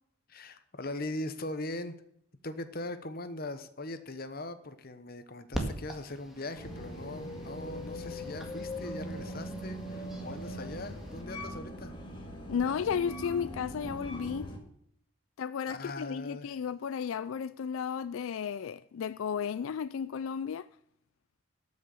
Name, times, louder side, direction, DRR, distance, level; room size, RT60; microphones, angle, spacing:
voice 1, 0.3-1.9 2.4-11.9 15.7-16.5, left 2 dB, 45° left, 1.1 m, -40 dB
sound 1, 5.5-11.2, right 1 dB, ahead, 1.8 m, -43 dB
sound 2, 6.6-14.6, equal, 25° left, 1.9 m, -41 dB
voice 2, 12.5-14.5 15.4-20.7, left 7 dB, 85° left, 0.4 m, -33 dB
13.0 x 6.4 x 7.1 m
head